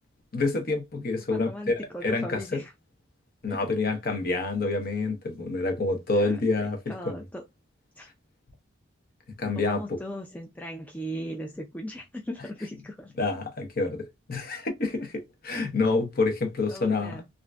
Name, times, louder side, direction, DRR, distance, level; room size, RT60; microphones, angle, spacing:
voice 1, 0.3-1.7 2.0-2.6 3.4-6.8 7.0-7.2 9.4-9.8 13.2-17.2, left 3 dB, 45° left, 0.8 m, -27 dB
voice 2, 1.3-2.7 3.5-3.7 6.1-7.4 8.0-8.1 9.5-13.1 16.7-17.3, equal, 5° left, 0.3 m, -38 dB
3.6 x 2.5 x 2.2 m
head